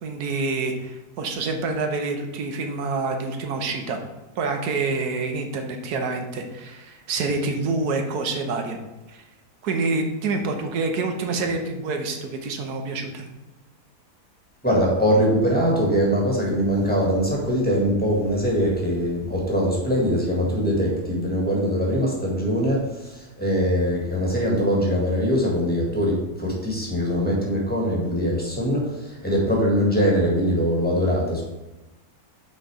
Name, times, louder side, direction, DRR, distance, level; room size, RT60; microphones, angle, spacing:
voice 1, 0.0-4.0 4.4-8.8 9.1-9.2 9.6-13.3, right 3 dB, 85° right, 5 dB, 1.4 m, -27 dB
voice 2, 14.6-31.4, equal, 5° left, -3 dB, 1.7 m, -22 dB
6.4 x 4.5 x 4.7 m, 1.0 s
omnidirectional pair, 1.6 m